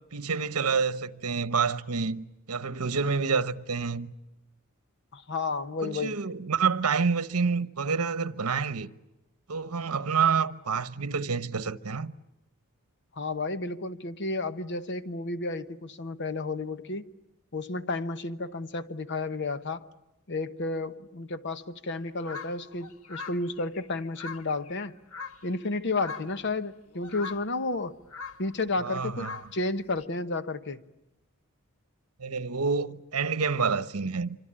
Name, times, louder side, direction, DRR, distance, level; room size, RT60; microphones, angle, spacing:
voice 1, 0.0-4.1 5.8-8.9 9.5-12.1 28.8-29.4 32.2-34.4, right 5 dB, 85° right, 1.0 m, -28 dB
voice 2, 5.1-6.2 13.2-17.0 17.5-19.9 20.3-24.9 25.4-27.9 28.4-30.8, left 3 dB, 55° left, 1.1 m, -32 dB
sound 1, 22.2-25.7 26.0-26.5 26.9-30.1, left 4 dB, 75° left, 1.4 m, -43 dB
26.5 x 25.5 x 8.8 m
head